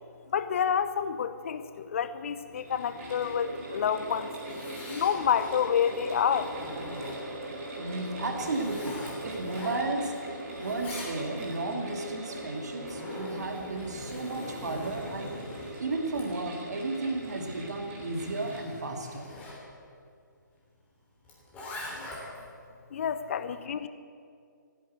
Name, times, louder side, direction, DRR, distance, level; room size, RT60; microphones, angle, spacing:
voice 1, 0.3-4.3 4.9-6.5 22.9-23.9, left 8 dB, 40° left, 12 dB, 0.8 m, -28 dB
sound 1, 2.4-18.6, right 1 dB, 40° right, 4.6 m, -41 dB
Zipper (clothing), 4.1-5.6 6.1-7.4 8.0-10.2 10.4-11.6 12.5-19.6 21.2-22.5, left 1 dB, 15° left, 3.5 m, -43 dB
voice 2, 7.8-10.1 10.6-15.3 15.8-19.3, right 2 dB, 55° right, 3 dB, 2.5 m, -33 dB
15.5 x 11.0 x 8.3 m, 2.3 s
figure-of-eight pair, 140°, 11 cm